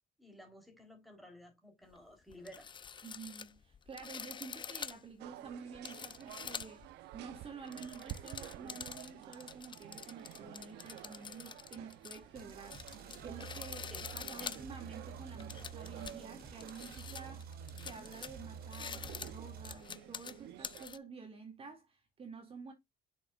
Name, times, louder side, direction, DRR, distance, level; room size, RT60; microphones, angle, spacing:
voice 1, 0.2-2.7 13.9-14.1 14.4-14.5, equal, ahead, 3.8 m, -54 dB
sound 1, 1.9-2.0 2.3-6.9 7.5-21.0, left 6 dB, 30° left, 0.5 m, -47 dB
voice 2, 3.0-6.9 7.1-22.7, right 5 dB, 35° right, 2.4 m, -50 dB
sound 2, 5.2-20.9, right 14 dB, 85° right, 0.7 m, -52 dB
sound 3, 12.3-19.7, right 6 dB, 60° right, 3.1 m, -49 dB
8.1 x 6.6 x 2.5 m
cardioid pair, 110°, 17 cm